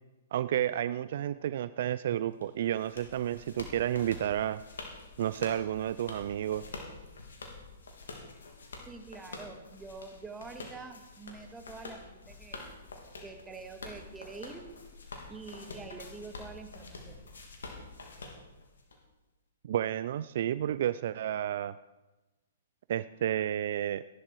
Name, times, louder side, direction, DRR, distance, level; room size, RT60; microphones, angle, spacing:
voice 1, 0.3-4.6 5.2-6.6 19.6-21.8 22.9-24.0, right 11 dB, 55° right, 15 dB, 0.4 m, -31 dB
sound 1, 2.4-19.0, left 3 dB, 75° left, 3.0 m, -47 dB
voice 2, 8.9-12.6 13.2-14.6 15.3-17.2, right 4 dB, 10° right, 5 dB, 1.9 m, -46 dB
17.5 x 11.5 x 4.6 m, 1.1 s
figure-of-eight pair, 120°, 0 cm